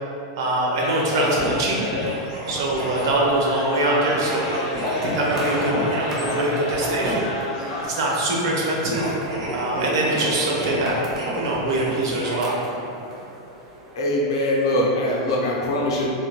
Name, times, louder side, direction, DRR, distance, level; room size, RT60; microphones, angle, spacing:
voice 1, 0.4-1.8 2.5-4.5 5.0-7.3 7.8-9.1 9.5-11.0 11.4-12.5, right 1 dB, 65° right, -3 dB, 0.6 m, -23 dB
sound 1, 0.8-7.8, left 1 dB, 45° left, 0.5 m, -30 dB
sound 2, 1.0-3.3 4.1-7.4 8.4-12.4, right 1 dB, 90° right, 0.9 m, -30 dB
sound 3, 1.7-14.0, right 1 dB, 20° right, 0.4 m, -40 dB
voice 2, 13.9-16.1, left 1 dB, 90° left, -4 dB, 0.7 m, -22 dB
3.3 x 2.2 x 2.9 m, 2.6 s
supercardioid pair, 170°, 2 cm